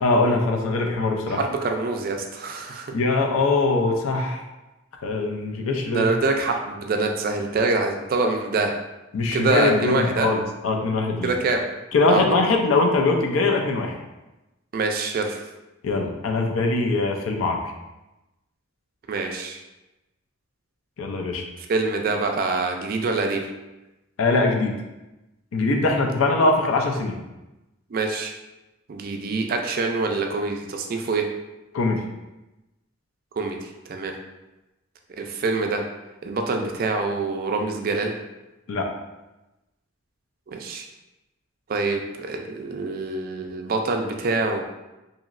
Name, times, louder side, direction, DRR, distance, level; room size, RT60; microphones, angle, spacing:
voice 1, 0.0-1.4 2.9-4.4 5.0-6.0 9.1-11.3 11.9-14.0 15.8-17.6 21.0-21.5 24.2-24.7 25.5-27.2 31.7-32.0 38.7-38.9, left 3 dB, 85° left, 2 dB, 0.5 m, -22 dB
voice 2, 1.3-2.9 5.9-8.7 9.3-10.3 11.2-11.6 12.1-12.5 14.7-15.4 19.1-19.6 21.7-23.4 27.9-28.3 28.9-31.3 33.3-34.1 35.2-35.8 36.2-38.2 40.5-40.8 41.7-44.6, right 3 dB, 45° right, 3 dB, 0.3 m, -25 dB
2.9 x 2.7 x 2.5 m, 1.0 s
head